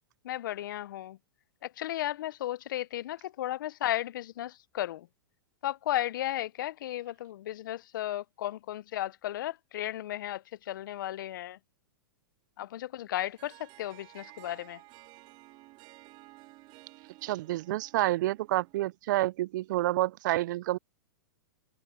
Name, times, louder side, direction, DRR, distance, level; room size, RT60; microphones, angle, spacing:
voice 1, 0.2-1.2 1.6-5.1 5.6-11.6 12.6-14.8, left 13 dB, 65° left, 0.7 m, -34 dB
Harp, 13.1-18.9, right 20 dB, 40° right, 3.1 m, -54 dB
voice 2, 17.2-20.8, right 16 dB, 60° right, 0.4 m, -29 dB
hypercardioid pair, 115°, 11 cm